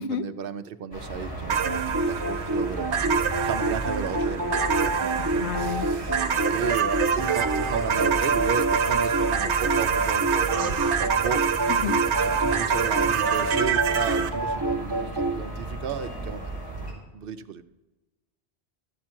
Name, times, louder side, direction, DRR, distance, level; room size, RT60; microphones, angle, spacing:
voice 1, 0.0-2.9 3.4-6.2 6.5-11.4 11.8-11.9 12.1-16.6 17.1-17.7, right 7 dB, 60° right, 10 dB, 0.7 m, -34 dB
sound 1, 0.9-16.9, right 1 dB, 20° left, 3.8 m, -35 dB
sound 2, 1.5-15.4, right 2 dB, 20° right, 0.6 m, -28 dB
sound 3, 1.5-14.3, right 7 dB, 85° right, 1.0 m, -27 dB
voice 2, 5.4-5.9 11.7-12.0, left 6 dB, 90° left, 10 dB, 1.0 m, -30 dB
13.0 x 7.5 x 4.4 m, 1.1 s
omnidirectional pair, 1.1 m